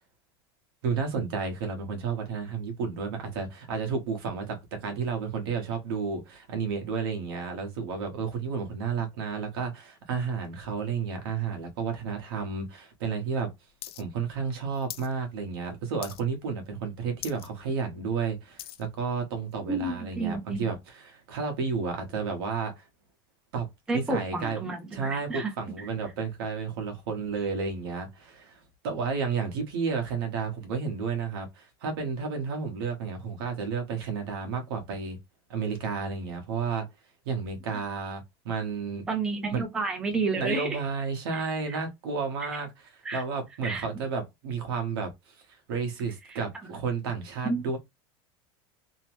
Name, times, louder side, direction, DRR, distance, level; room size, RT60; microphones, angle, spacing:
voice 1, 0.8-13.5 14.0-22.8 23.5-23.7 23.9-24.6 24.9-35.2 35.5-36.9 37.2-39.1 39.5-39.7 40.3-42.7 43.1-45.1 45.7-47.8, right 5 dB, 75° right, 1.2 m, -32 dB
sound 1, 13.8-14.0 14.3-15.1 15.5-15.7 16.0-16.5 16.8-16.9 17.1-17.5 17.9-18.9 19.5-19.6, left 13 dB, 90° left, 0.4 m, -41 dB
voice 2, 19.7-20.7 23.9-25.5 25.8-25.9 39.1-40.8 41.3-41.8 43.0-43.2 43.6-43.9 46.3-46.4 47.4-47.6, right 3 dB, 5° right, 0.4 m, -31 dB
3.0 x 2.0 x 3.0 m
supercardioid pair, 175°, 13 cm